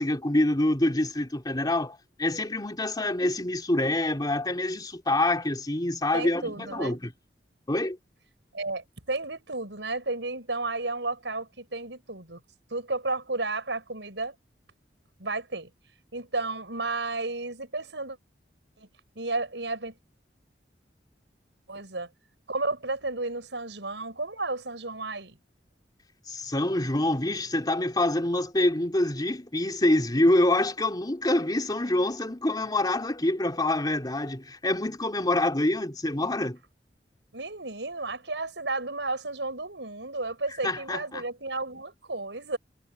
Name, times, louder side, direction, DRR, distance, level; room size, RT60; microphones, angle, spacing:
voice 1, 0.0-7.1 7.7-8.0 26.3-36.6 40.6-41.2, left 1 dB, 25° left, 3.2 m, -26 dB
voice 2, 6.1-7.0 8.5-12.4 12.7-14.3 15.2-15.7 16.1-18.2 18.8-18.9 19.1-19.9 21.7-22.1 22.5-25.4 37.3-42.6, right 3 dB, 85° right, 6.4 m, -32 dB
head